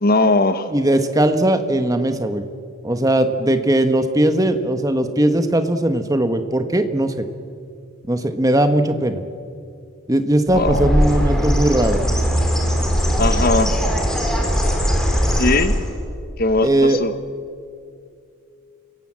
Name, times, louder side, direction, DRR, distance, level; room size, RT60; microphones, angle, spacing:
voice 1, 0.0-0.7 10.5-10.9 13.2-13.7 15.4-15.8 16.4-17.1, left 2 dB, 45° left, 10 dB, 1.1 m, -19 dB
voice 2, 0.7-2.4 2.8-7.2 8.1-9.2 10.1-12.0 16.6-17.0, right 1 dB, 15° right, 8 dB, 1.2 m, -19 dB
Bird, 10.5-16.0, equal, 5° left, 3.1 m, -19 dB
28.0 x 17.0 x 7.5 m, 2.4 s
head